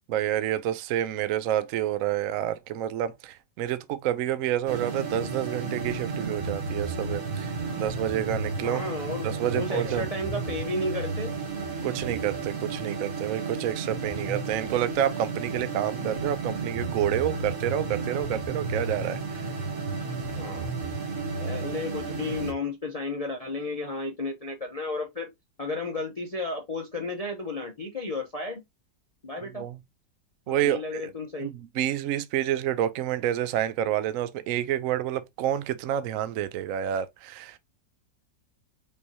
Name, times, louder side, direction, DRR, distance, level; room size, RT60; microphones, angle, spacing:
voice 1, 0.1-8.8 9.2-10.1 11.8-19.5 29.5-29.8 30.5-31.0 31.4-37.6, right 11 dB, 75° right, 0.7 m, -29 dB
sound 1, 4.7-22.5, right 4 dB, 55° right, 1.5 m, -33 dB
voice 2, 8.6-9.3 9.6-11.3 20.4-20.7 21.4-25.3 25.6-28.6 29.2-29.7 30.5-31.5, left 2 dB, 40° left, 0.5 m, -33 dB
5.3 x 3.2 x 2.7 m
omnidirectional pair, 1.9 m